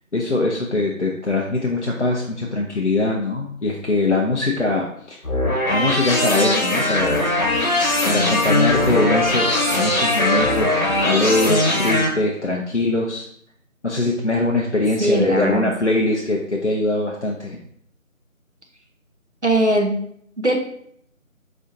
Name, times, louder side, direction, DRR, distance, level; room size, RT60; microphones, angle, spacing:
voice 1, 0.1-5.2 5.7-7.4 8.0-10.8 11.0-13.3 13.8-17.6, left 2 dB, 60° left, -1 dB, 0.5 m, -22 dB
sound 1, 5.2-12.1, left 1 dB, 85° left, 1.1 m, -20 dB
voice 2, 15.0-15.6 19.4-20.0 20.4-20.6, right 1 dB, 55° right, 1 dB, 0.5 m, -19 dB
4.1 x 2.7 x 2.5 m, 0.67 s
figure-of-eight pair, 175°, 42 cm